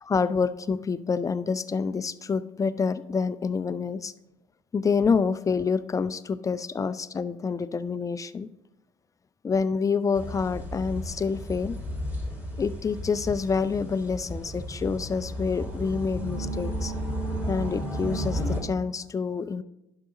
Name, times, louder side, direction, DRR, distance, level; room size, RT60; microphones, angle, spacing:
voice 1, 0.0-4.1 4.7-8.5 9.4-11.8 12.6-16.9 17.5-19.6, left 5 dB, 20° left, 14 dB, 0.4 m, -27 dB
sound 1, 10.1-18.6, equal, 10° right, 3.5 m, -33 dB
11.0 x 5.8 x 4.1 m, 0.93 s
hypercardioid pair, 70°, 17 cm